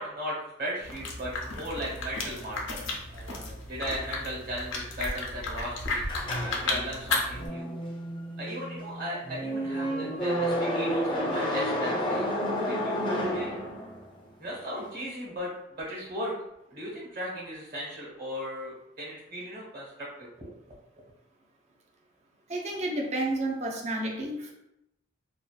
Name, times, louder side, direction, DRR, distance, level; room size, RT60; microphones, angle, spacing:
voice 1, 0.0-6.0 6.4-7.8 8.4-12.3 12.7-13.5 14.4-16.3 16.7-20.5, equal, 50° right, -5 dB, 1.2 m, -37 dB
sound 1, 0.8-7.5, left 3 dB, 85° left, 0.5 m, -34 dB
sound 2, 6.1-14.1, equal, 25° left, 0.4 m, -31 dB
voice 2, 22.5-24.5, right 1 dB, 35° right, 1 dB, 0.4 m, -31 dB
2.6 x 2.2 x 2.3 m, 0.82 s
head